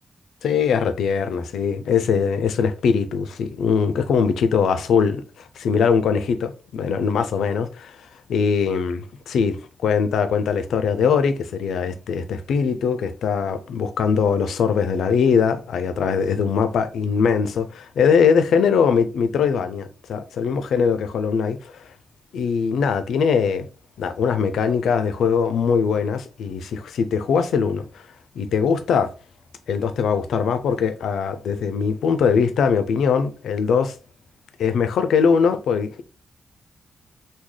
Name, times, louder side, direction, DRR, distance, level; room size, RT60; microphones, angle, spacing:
voice 1, 0.4-7.7 8.3-21.9 22.3-23.7 24.0-27.9 28.3-29.1 29.7-33.9 34.6-36.0, left 6 dB, 90° left, 0.4 m, -21 dB
3.7 x 2.2 x 3.1 m
cardioid pair, 85°, 0 cm